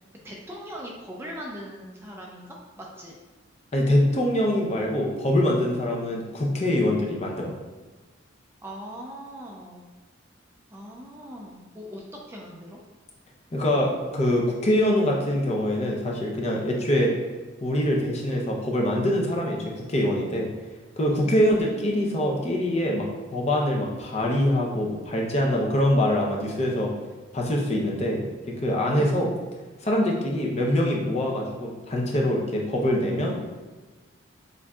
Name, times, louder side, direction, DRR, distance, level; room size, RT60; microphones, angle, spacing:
voice 1, 0.2-3.1 8.6-9.8 10.7-12.0 12.3-12.8 21.2-22.1 23.1-23.2 28.9-29.2, equal, 10° right, -2 dB, 0.4 m, -40 dB
voice 2, 3.7-7.5 13.5-17.1 17.6-20.5 21.0-26.9 27.3-28.2 28.6-29.3 29.8-33.4, left 1 dB, 35° left, -1 dB, 0.6 m, -24 dB
7.2 x 2.6 x 2.3 m, 1.3 s
head